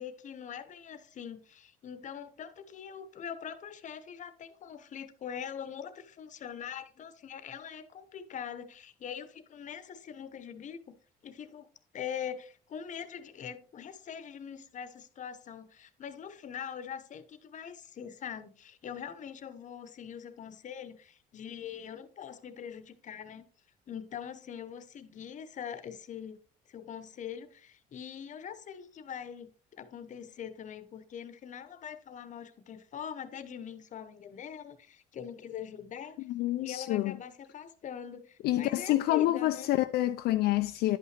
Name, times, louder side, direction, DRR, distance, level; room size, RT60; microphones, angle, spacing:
voice 1, 0.0-11.0 11.2-11.7 11.9-23.5 23.9-26.4 26.7-36.2 36.6-39.7, left 8 dB, 45° left, 0.9 m, -43 dB
voice 2, 36.2-37.2 38.4-41.0, left 15 dB, 75° left, 0.4 m, -27 dB
10.5 x 5.6 x 3.2 m
cardioid pair, 110°, 17 cm